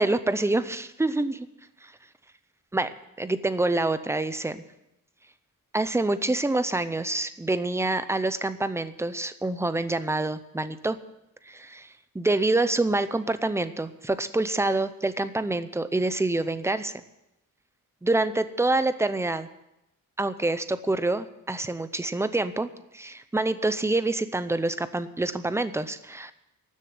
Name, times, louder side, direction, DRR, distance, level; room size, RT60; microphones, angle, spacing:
voice 1, 0.0-1.3 1.8-1.9 2.7-4.6 5.7-11.0 11.5-17.0 18.0-19.5 20.2-22.7 22.9-26.3, right 2 dB, 10° right, 12 dB, 0.6 m, -26 dB
13.0 x 7.5 x 9.4 m, 0.88 s
wide cardioid pair, 160°, 34 cm